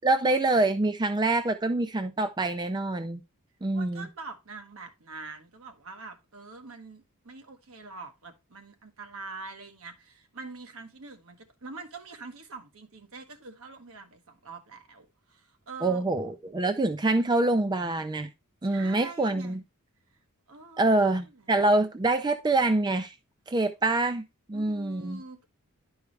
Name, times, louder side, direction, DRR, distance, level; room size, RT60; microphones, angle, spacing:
voice 1, 0.0-3.2 3.6-4.1 15.8-18.3 18.6-19.6 20.8-23.1 23.5-24.2 24.5-25.2, right 2 dB, 20° right, 0.4 m, -25 dB
voice 2, 3.7-16.1 18.6-19.6 20.5-21.6 24.5-25.5, right 3 dB, 65° right, 1.2 m, -45 dB
11.0 x 4.7 x 3.2 m
head